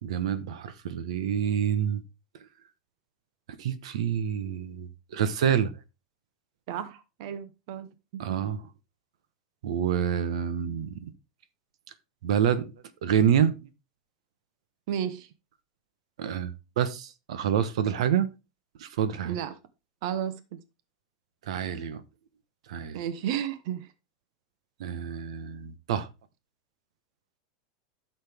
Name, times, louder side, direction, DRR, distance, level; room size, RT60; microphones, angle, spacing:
voice 1, 0.0-2.0 3.6-5.7 8.2-8.6 9.6-11.1 12.2-12.7 13.0-13.5 16.2-18.3 18.8-19.4 21.5-22.0 22.7-23.0 24.8-26.1, right 8 dB, 80° right, 1.1 m, -27 dB
voice 2, 6.7-7.9 8.1-8.2 14.9-15.3 19.2-19.6 20.0-20.6 22.9-23.9, right 9 dB, 50° right, 0.9 m, -33 dB
12.0 x 6.6 x 3.5 m
supercardioid pair, 175°, 3 cm